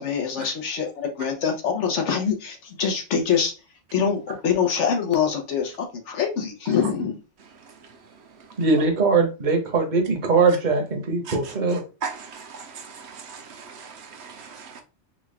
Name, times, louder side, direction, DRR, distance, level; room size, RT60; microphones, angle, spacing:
voice 1, 0.0-3.5 3.9-7.2, left 7 dB, 85° left, 1.2 m, -24 dB
voice 2, 8.6-11.8, right 4 dB, 45° right, 0.9 m, -21 dB
voice 3, 12.0-14.8, right 5 dB, 70° right, 1.0 m, -37 dB
3.8 x 2.3 x 3.2 m
omnidirectional pair, 1.2 m